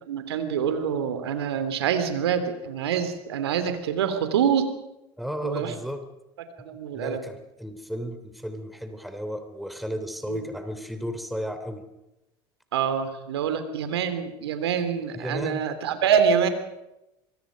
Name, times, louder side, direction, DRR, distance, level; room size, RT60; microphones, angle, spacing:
voice 1, 0.1-4.7 5.4-5.7 6.6-7.2 10.3-10.4 12.7-16.5, right 7 dB, 80° right, 10 dB, 2.9 m, -25 dB
voice 2, 5.2-6.0 6.9-11.8 15.1-15.6, equal, ahead, 8 dB, 3.2 m, -34 dB
25.5 x 22.5 x 5.2 m, 0.93 s
hypercardioid pair, 80°, 13 cm